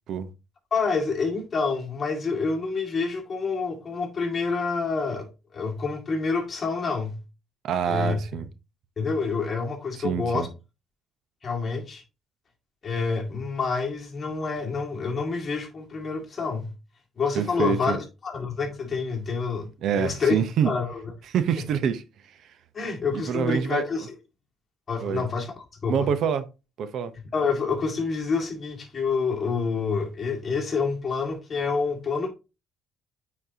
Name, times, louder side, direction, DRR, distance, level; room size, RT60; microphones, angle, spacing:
voice 1, 0.7-7.2 7.8-8.2 9.0-10.5 11.4-12.0 12.8-16.7 17.2-18.0 18.2-19.7 19.9-21.1 22.7-24.1 24.9-26.1 27.1-32.3, left 4 dB, 30° left, 2.1 m, -28 dB
voice 2, 7.6-8.5 10.0-10.5 17.3-18.0 19.8-20.7 21.3-22.0 23.3-23.8 25.0-25.2 25.9-26.5 26.8-27.1, right 7 dB, 60° right, 0.7 m, -26 dB
9.0 x 4.2 x 2.8 m
cardioid pair, 140°, 0 cm